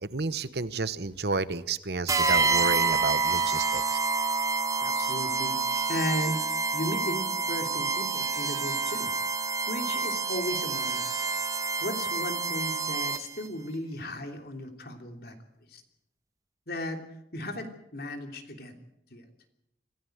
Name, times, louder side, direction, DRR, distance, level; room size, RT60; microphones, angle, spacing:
voice 1, 0.0-3.8, right 3 dB, 65° right, 15 dB, 1.0 m, -31 dB
sound 1, 2.1-13.5, right 4 dB, 20° right, 0.8 m, -28 dB
voice 2, 4.8-6.4 6.7-9.1 9.7-11.3 11.8-15.4 15.7-15.8 16.7-17.0 17.3-18.7 19.1-19.2, left 1 dB, 60° left, 5 dB, 3.1 m, -35 dB
26.5 x 15.5 x 7.9 m, 0.80 s
head